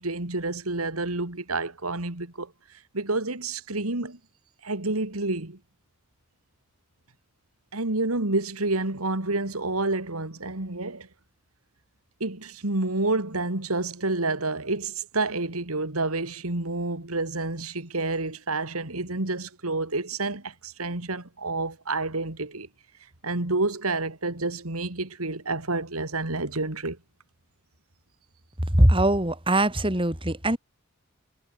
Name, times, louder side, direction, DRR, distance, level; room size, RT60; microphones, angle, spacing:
voice 1, 0.0-2.5 2.9-4.2 4.6-5.6 7.7-11.1 12.2-22.7 23.2-27.0, right 2 dB, 90° right, 3.0 m, -29 dB
voice 2, 28.7-30.6, right 1 dB, 25° right, 3.8 m, -21 dB
head